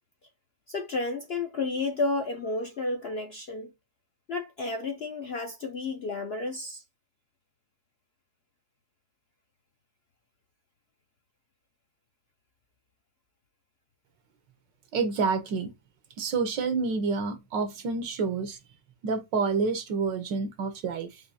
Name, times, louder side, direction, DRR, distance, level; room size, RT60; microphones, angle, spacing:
voice 1, 0.7-3.7 4.3-6.8, left 3 dB, 70° left, 0.6 m, -31 dB
voice 2, 14.9-15.7 16.2-18.6 19.0-21.1, right 4 dB, 85° right, 1.7 m, -28 dB
5.9 x 2.7 x 2.7 m
omnidirectional pair, 1.9 m